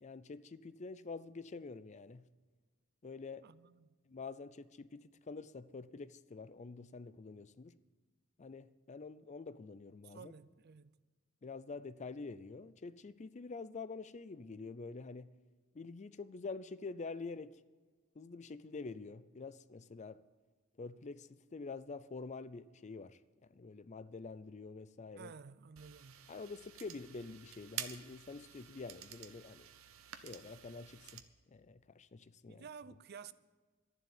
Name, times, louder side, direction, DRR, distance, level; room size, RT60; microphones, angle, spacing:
voice 1, 0.0-2.3 3.0-3.5 4.1-7.8 8.4-10.3 11.4-15.3 15.7-17.6 18.1-20.2 20.8-25.3 26.3-29.7 30.2-31.2 31.5-32.7, left 4 dB, 35° left, 0.5 m, -47 dB
voice 2, 3.4-3.9 10.0-10.9 25.2-26.3 32.5-33.3, right 6 dB, 50° right, 0.5 m, -53 dB
sound 1, 25.8-31.2, right 10 dB, 75° right, 0.9 m, -50 dB
12.5 x 11.0 x 7.2 m
head